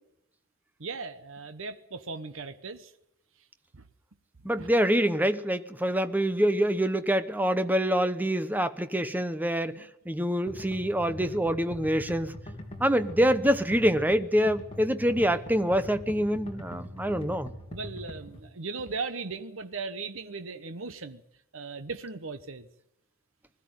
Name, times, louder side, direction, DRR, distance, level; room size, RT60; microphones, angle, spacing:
voice 1, 0.8-2.9 3.7-3.8 4.6-4.7 17.7-21.2 21.5-22.7, right 4 dB, 60° right, 1.1 m, -37 dB
voice 2, 4.4-12.3 12.8-17.5, equal, 10° right, 0.8 m, -26 dB
sound 1, 10.5-18.4, left 1 dB, 30° left, 3.1 m, -42 dB
20.5 x 14.0 x 9.3 m
head